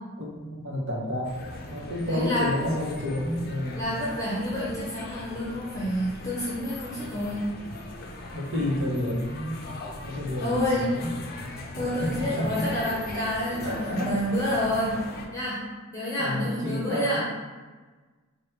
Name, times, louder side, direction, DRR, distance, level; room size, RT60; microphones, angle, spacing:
voice 1, 0.2-1.3 1.7-3.8 8.3-9.7 10.0-11.1 11.7-12.7 13.6-14.1 16.2-17.2, left 1 dB, 60° right, -3 dB, 1.0 m, -30 dB
sound 1, 1.2-15.3, left 2 dB, 45° left, 0.5 m, -40 dB
voice 2, 2.1-2.5 3.7-7.4 10.4-10.9 11.7-15.0 15.3-15.6 15.9-17.2, left 1 dB, 15° left, -7 dB, 0.8 m, -28 dB
4.6 x 2.3 x 3.2 m, 1.3 s
head